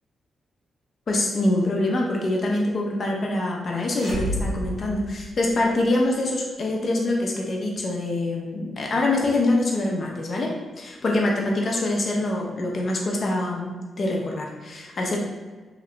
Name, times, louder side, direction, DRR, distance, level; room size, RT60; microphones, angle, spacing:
voice 1, 1.1-15.2, left 2 dB, 55° left, 0 dB, 0.8 m, -25 dB
sound 1, 3.8-5.8, equal, 85° right, 1.2 m, -31 dB
2.9 x 2.8 x 3.2 m, 1.3 s
hypercardioid pair, 45°, 0 cm